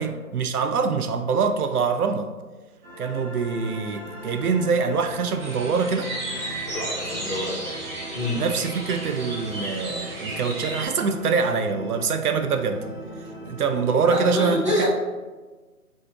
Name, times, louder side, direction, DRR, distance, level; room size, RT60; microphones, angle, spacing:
voice 1, 0.0-2.3 3.0-6.1 8.3-12.8 13.4-14.9, right 5 dB, 80° right, 8 dB, 0.5 m, -24 dB
sound 1, 2.8-14.0, right 1 dB, 40° right, 1.3 m, -39 dB
sound 2, 5.4-10.9, right 1 dB, 60° right, 1.4 m, -34 dB
voice 2, 6.6-7.6 8.1-8.4 14.0-14.9, equal, 20° right, -7 dB, 0.5 m, -26 dB
5.5 x 2.7 x 2.8 m, 1.3 s
figure-of-eight pair, 155°, 44 cm